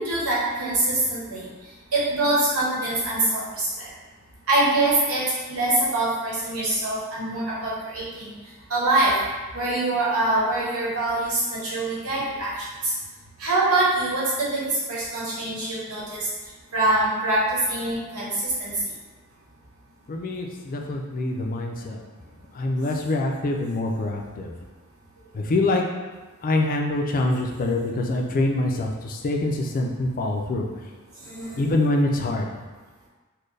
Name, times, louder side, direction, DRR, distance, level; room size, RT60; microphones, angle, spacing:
voice 1, 0.0-1.5 1.9-3.9 4.5-8.3 8.7-9.1 9.5-12.9 13.4-16.2 16.7-18.7 31.2-31.6, right 2 dB, 80° right, -6 dB, 1.2 m, -24 dB
voice 2, 20.1-22.0 22.6-24.5 25.3-25.8 26.4-30.7 31.6-32.5, left 2 dB, 40° left, 1 dB, 0.4 m, -25 dB
4.2 x 2.2 x 3.2 m, 1.2 s
head